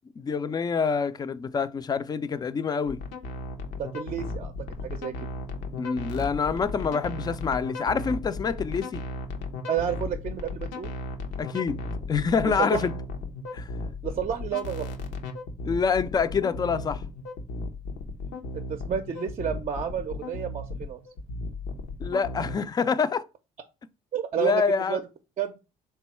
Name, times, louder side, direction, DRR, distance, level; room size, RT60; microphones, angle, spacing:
voice 1, 0.2-3.0 5.8-9.0 11.4-11.8 12.1-12.9 13.5-13.7 15.7-17.0 22.0-23.2 24.4-25.0, left 5 dB, 25° left, 0.4 m, -26 dB
sound 1, 2.9-22.6, left 2 dB, 85° left, 0.7 m, -35 dB
voice 2, 3.8-4.5 4.8-5.1 9.7-10.9 12.6-12.8 14.0-14.9 18.7-21.0 24.1-24.6 24.9-25.0 25.4-25.6, right 8 dB, 40° right, 0.5 m, -30 dB
3.5 x 2.3 x 4.1 m
supercardioid pair, 75°, 17 cm